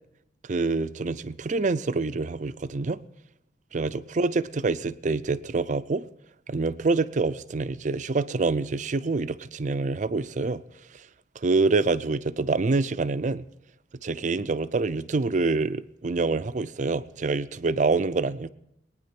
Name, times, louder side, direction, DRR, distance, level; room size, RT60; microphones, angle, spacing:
voice 1, 0.5-3.0 3.7-6.0 6.5-10.6 11.4-13.5 14.0-18.5, right 3 dB, 45° right, 0.5 m, -26 dB
21.5 x 9.5 x 5.8 m
head